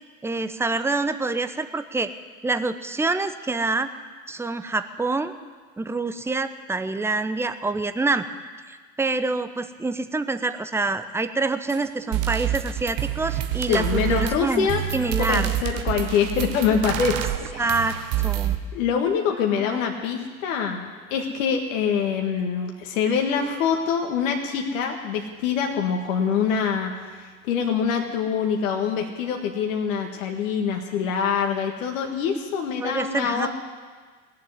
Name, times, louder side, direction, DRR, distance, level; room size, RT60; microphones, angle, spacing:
voice 1, 0.2-2.1 2.4-3.9 4.3-5.3 5.8-8.2 8.7-15.5 17.6-18.0 18.2-18.6 19.7-19.8 32.8-33.5, right 3 dB, 5° right, 11 dB, 0.7 m, -26 dB
sound 1, 11.7-11.8 12.1-18.6, right 12 dB, 45° right, 1.4 m, -27 dB
voice 2, 13.7-14.8 15.3-17.2 17.5-17.8 18.7-33.5, left 7 dB, 65° left, 2 dB, 1.8 m, -25 dB
18.5 x 7.6 x 9.6 m, 1.5 s
hypercardioid pair, 85°, 43 cm